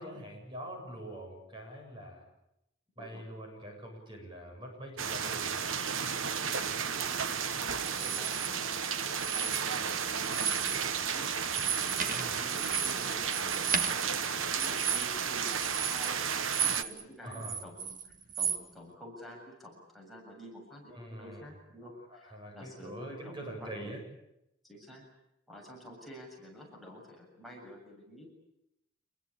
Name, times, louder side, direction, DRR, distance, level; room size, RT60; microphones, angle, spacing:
voice 1, 0.0-2.2 3.0-5.6 12.1-12.4 17.2-17.6 20.9-21.5 22.1-24.0, right 1 dB, 25° right, 2 dB, 7.8 m, -44 dB
sound 1, 5.0-16.8, right 7 dB, 75° right, 1.2 m, -33 dB
voice 2, 6.4-7.2 7.8-11.3 11.8-16.4 16.7-18.0 18.4-23.9 24.6-25.0 25.5-28.3, left 1 dB, ahead, -2 dB, 7.2 m, -50 dB
sound 2, 7.9-8.5 9.1-9.9 10.2-10.9 11.2-17.0 17.3-18.6, right 7 dB, 40° right, 1.8 m, -34 dB
27.5 x 22.0 x 8.6 m, 0.84 s
head